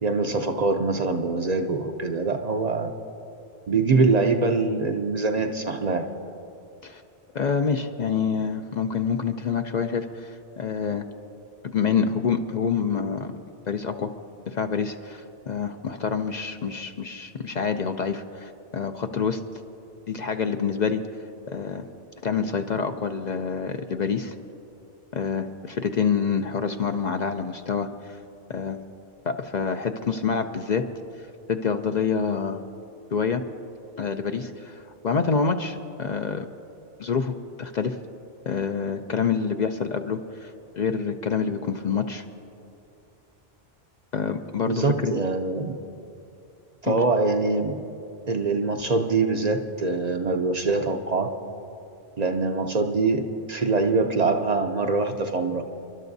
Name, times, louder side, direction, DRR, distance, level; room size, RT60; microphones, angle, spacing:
voice 1, 0.0-2.9 3.7-6.1 44.7-45.8 46.8-47.8 48.3-51.3 52.2-55.6, right 3 dB, 45° right, 5 dB, 0.6 m, -24 dB
voice 2, 7.3-11.1 11.6-13.3 13.7-14.1 14.5-19.4 20.1-21.0 21.5-21.8 22.2-24.3 25.1-28.2 28.5-28.8 29.3-30.8 31.5-32.6 33.1-33.4 34.0-36.5 37.0-38.0 38.5-42.2 44.1-45.1 46.8-47.0, left 6 dB, 50° left, 7 dB, 0.6 m, -27 dB
30.0 x 11.5 x 2.7 m, 2.7 s
omnidirectional pair, 1.1 m